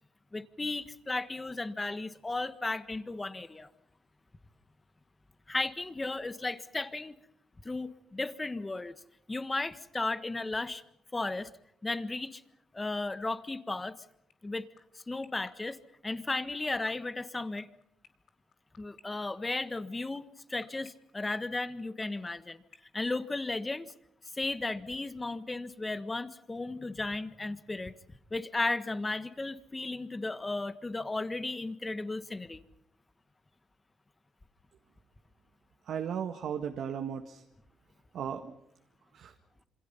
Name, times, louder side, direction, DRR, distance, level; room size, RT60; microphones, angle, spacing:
voice 1, 0.3-3.7 5.5-7.1 7.6-8.9 9.3-10.8 11.1-11.5 11.8-12.4 12.7-14.0 14.4-14.7 14.9-17.7 18.8-22.6 22.9-23.9 24.4-32.6, left 2 dB, 20° left, 12 dB, 1.5 m, -35 dB
sound 1, 14.3-23.9, left 8 dB, 60° left, 2.7 m, -54 dB
voice 2, 35.8-37.4 38.1-38.5 39.1-39.3, right 8 dB, 70° right, 5 dB, 1.7 m, -36 dB
27.0 x 26.0 x 5.7 m, 0.75 s
cardioid pair, 90°, 0 cm